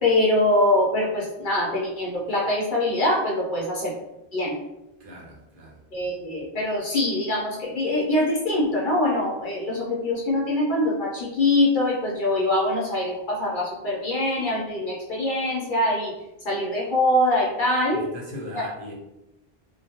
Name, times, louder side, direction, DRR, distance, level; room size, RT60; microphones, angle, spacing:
voice 1, 0.0-3.9 4.3-4.6 5.9-16.1 16.4-18.0 18.5-18.7, left 1 dB, 55° left, -4 dB, 0.8 m, -23 dB
voice 2, 5.0-5.8 17.9-18.9, equal, 60° right, -4 dB, 0.9 m, -39 dB
2.3 x 2.2 x 2.8 m, 0.90 s
omnidirectional pair, 1.1 m